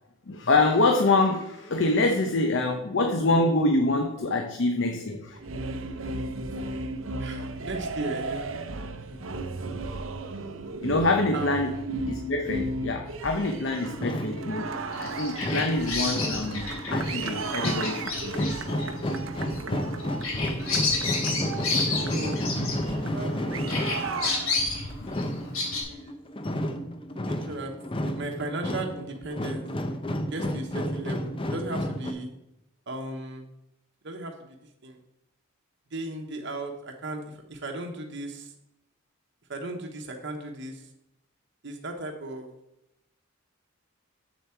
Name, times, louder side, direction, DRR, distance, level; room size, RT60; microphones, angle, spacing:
voice 1, 0.3-5.4 10.8-11.7 12.1-14.7 15.0-18.9, left 2 dB, 60° left, 4 dB, 0.8 m, -25 dB
sound 1, 5.3-24.9, right 2 dB, 70° right, 0.7 m, -35 dB
voice 2, 7.2-8.5 9.0-9.2 11.3-11.6 15.4-15.6 20.1-20.6 22.1-22.4 22.8-24.3 25.8-26.2 27.2-27.7 28.0-29.6 30.3-32.3 32.9-33.5 34.0-34.6 34.8-35.0 35.9-38.5 39.5-40.9 41.6-42.5, right 2 dB, 55° right, 2 dB, 1.0 m, -36 dB
sound 2, 13.5-32.1, equal, 25° left, 0.6 m, -32 dB
Bird vocalization bird call bird song, 14.9-23.3 23.7-25.8, left 3 dB, 80° left, 2.8 m, -31 dB
7.4 x 7.1 x 4.4 m, 0.87 s
head